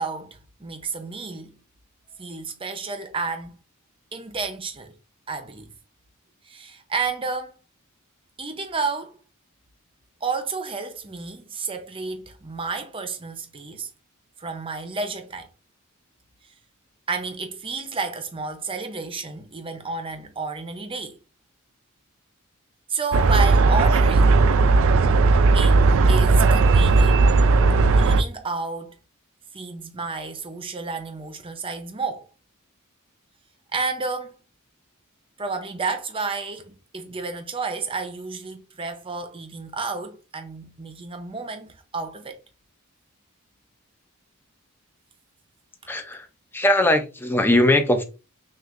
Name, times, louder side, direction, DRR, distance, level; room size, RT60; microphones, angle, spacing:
voice 1, 0.0-1.6 2.2-3.6 4.1-4.9 5.3-5.7 6.4-7.5 8.4-9.2 10.2-13.9 14.4-15.5 17.1-21.2 22.9-24.5 25.5-27.3 28.0-29.0 29.5-32.3 33.7-34.4 35.4-42.4, right 4 dB, 25° right, 0.7 m, -31 dB
sound 1, 23.1-28.2, right 3 dB, 70° right, 0.4 m, -16 dB
voice 2, 45.9-46.3 46.5-48.0, left 1 dB, 10° left, 0.5 m, -20 dB
6.0 x 2.5 x 2.5 m
head